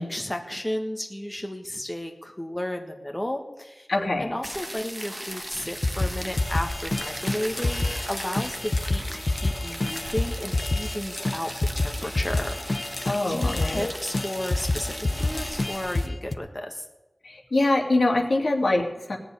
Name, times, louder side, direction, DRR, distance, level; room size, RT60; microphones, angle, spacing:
voice 1, 0.0-3.9 4.2-12.6 12.8-13.0 13.3-14.9 15.2-16.8, left 1 dB, 15° left, 3 dB, 1.6 m, -33 dB
voice 2, 3.9-4.3 13.0-13.9 17.2-19.2, left 2 dB, 70° left, 1 dB, 2.6 m, -24 dB
sound 1, 4.4-16.1, equal, 10° right, 1.4 m, -38 dB
sound 2, 5.8-8.1 8.4-11.0 11.2-11.4 11.6-13.9 14.1-16.4, left 2 dB, 50° left, 0.8 m, -28 dB
sound 3, 6.4-16.0, left 2 dB, 90° left, 2.3 m, -41 dB
18.0 x 7.1 x 9.9 m, 1.0 s
wide cardioid pair, 75°, 0 cm